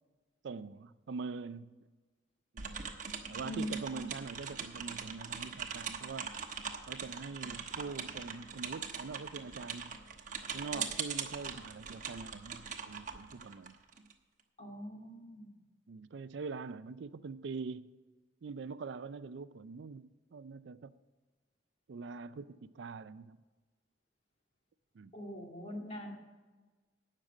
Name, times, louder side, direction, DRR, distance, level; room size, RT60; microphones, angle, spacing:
voice 1, 0.4-1.8 2.5-2.8 3.3-6.3 6.9-10.0 10.5-13.7 15.9-18.0 18.4-20.9 21.9-23.4 24.9-25.1, right 4 dB, 70° right, 0.4 m, -44 dB
sound 1, 2.6-14.1, right 6 dB, 45° right, 1.1 m, -41 dB
voice 2, 3.4-4.0 10.7-10.8 14.6-15.6 25.1-26.1, equal, 35° left, 2.2 m, -42 dB
18.0 x 6.6 x 5.0 m
head